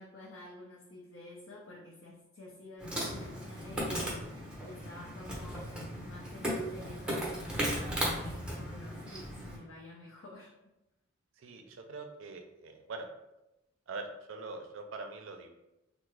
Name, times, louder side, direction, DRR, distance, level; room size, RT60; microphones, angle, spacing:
voice 1, 0.0-5.6 6.0-10.5, left 2 dB, 70° left, -5 dB, 0.6 m, -50 dB
Insect, 2.8-9.6, equal, 5° right, 0.6 m, -36 dB
voice 2, 11.4-13.1 13.9-15.5, right 3 dB, 70° right, 5 dB, 0.4 m, -43 dB
3.4 x 2.0 x 3.1 m, 0.94 s
head